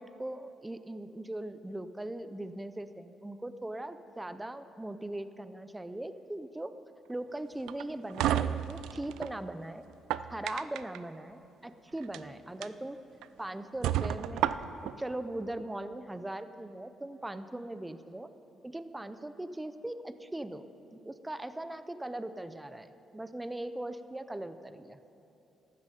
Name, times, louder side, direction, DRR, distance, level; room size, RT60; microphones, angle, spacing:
voice 1, 0.0-6.7 7.1-9.8 10.3-13.0 13.4-14.5 15.0-18.3 18.6-20.6 20.9-25.0, right 1 dB, 10° right, 11 dB, 0.5 m, -40 dB
sound 1, 7.7-9.3 9.9-11.0 12.0-12.2 12.6-12.7 13.2-13.3 13.8-14.9, right 11 dB, 90° right, 0.4 m, -31 dB
14.5 x 12.5 x 5.1 m, 2.9 s
cardioid pair, 90°, 0 cm